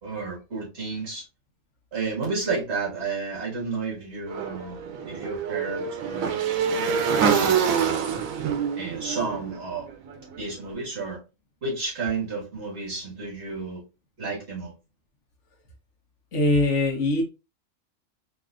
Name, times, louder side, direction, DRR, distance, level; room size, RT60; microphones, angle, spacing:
voice 1, 0.0-1.2 1.9-6.5 6.8-8.0 8.8-9.9 10.4-11.2 11.6-13.8 14.2-14.7, right 4 dB, 55° right, -2 dB, 1.9 m, -32 dB
Motorcycle / Engine, 4.3-10.4, right 6 dB, 80° right, 1.1 m, -26 dB
voice 2, 16.3-17.2, left 2 dB, 65° left, 1 dB, 1.2 m, -22 dB
4.0 x 2.8 x 2.5 m, 0.29 s
omnidirectional pair, 1.4 m